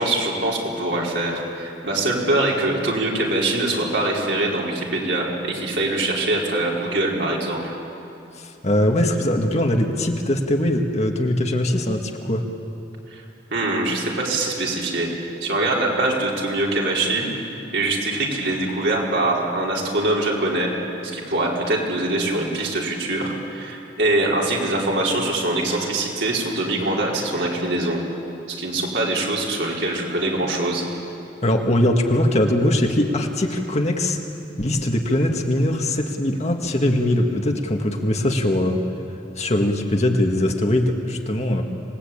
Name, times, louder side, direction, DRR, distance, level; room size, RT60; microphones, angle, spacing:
voice 1, 0.0-7.7 13.1-13.2 13.5-17.3 17.7-20.7 21.0-28.0 28.5-30.8, right 2 dB, 70° right, -3 dB, 4.6 m, -23 dB
voice 2, 8.4-12.4 31.4-34.2 34.6-38.8 39.4-41.6, left 1 dB, 35° left, 3 dB, 1.9 m, -21 dB
26.5 x 19.5 x 8.7 m, 2.7 s
head